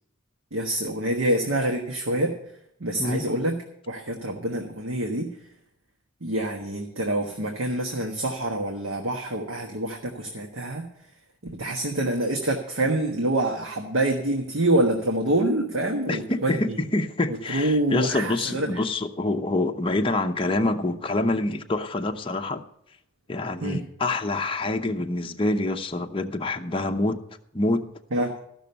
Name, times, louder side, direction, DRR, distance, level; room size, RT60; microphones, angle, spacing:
voice 1, 0.5-2.3 2.8-3.5 3.9-5.3 6.2-10.9 11.5-16.8 17.5-18.7 23.6-23.8 28.1-28.3, right 1 dB, 80° right, 2 dB, 1.3 m, -26 dB
voice 2, 16.1-22.6 23.3-27.2 27.5-27.9, left 2 dB, 25° left, 4 dB, 0.7 m, -26 dB
14.0 x 6.2 x 6.8 m, 0.75 s
head